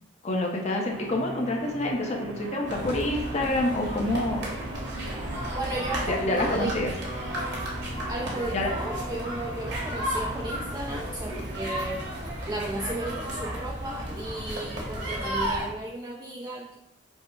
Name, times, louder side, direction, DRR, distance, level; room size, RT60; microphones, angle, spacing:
voice 1, 0.2-4.4 6.1-6.9 8.5-8.7, left 1 dB, 35° left, 0 dB, 0.7 m, -27 dB
sound 1, 0.9-13.9, right 1 dB, 75° right, 0.8 m, -41 dB
sound 2, 2.7-15.7, equal, 60° right, 1.2 m, -33 dB
voice 2, 5.6-6.7 8.1-12.0 12.5-16.8, right 1 dB, 20° right, -3 dB, 0.4 m, -34 dB
5.4 x 2.0 x 4.5 m, 0.84 s
head